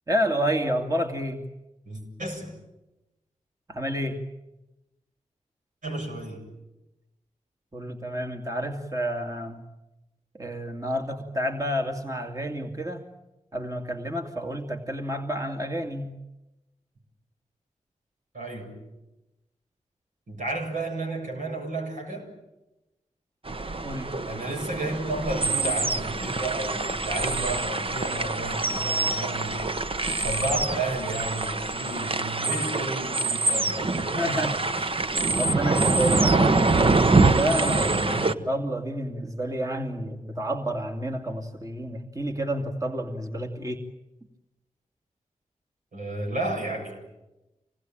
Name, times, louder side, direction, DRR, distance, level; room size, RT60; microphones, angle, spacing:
voice 1, 0.1-1.4 3.7-4.2 7.7-9.6 10.3-13.1 13.5-16.2 23.8-24.1 34.1-36.8 37.2-37.9 38.2-43.8, equal, 25° right, 4 dB, 2.4 m, -30 dB
voice 2, 1.9-2.6 5.8-6.5 18.3-18.8 20.3-22.3 24.3-29.7 30.2-34.6 37.7-38.5 45.9-47.0, right 2 dB, 75° right, 2 dB, 7.2 m, -32 dB
sound 1, 23.5-38.3, right 3 dB, 40° right, 1.1 m, -25 dB
26.5 x 19.0 x 9.0 m, 0.99 s
cardioid pair, 45°, 13 cm